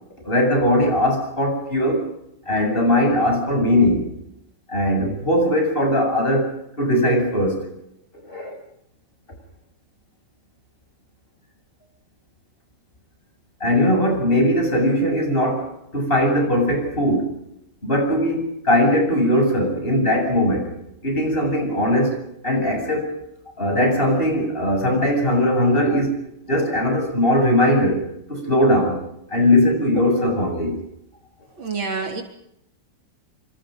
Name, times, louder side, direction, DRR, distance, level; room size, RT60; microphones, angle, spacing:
voice 1, 0.2-2.1 2.5-4.1 4.7-7.6 8.2-8.5 13.6-17.4 17.8-20.7 21.0-22.2 22.4-23.2 23.6-26.2 26.5-29.0 29.3-30.8, left 1 dB, 25° left, 2 dB, 8.3 m, -20 dB
voice 2, 31.6-32.2, right 4 dB, 90° right, 3 dB, 4.7 m, -27 dB
27.5 x 26.0 x 5.5 m, 0.77 s
omnidirectional pair, 2.1 m